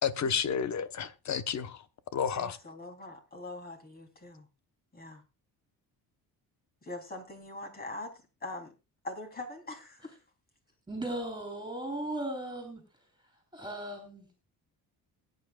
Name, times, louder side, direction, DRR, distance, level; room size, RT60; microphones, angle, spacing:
voice 1, 0.0-1.8 2.1-2.6, left 7 dB, 50° left, 1.1 m, -31 dB
voice 2, 2.3-4.5 4.9-5.2 6.8-8.7 9.0-10.1, left 2 dB, 25° left, 3.4 m, -43 dB
voice 3, 10.9-12.8 13.5-14.3, right 1 dB, 10° right, 3.7 m, -37 dB
21.5 x 9.4 x 2.4 m
cardioid pair, 115°, 38 cm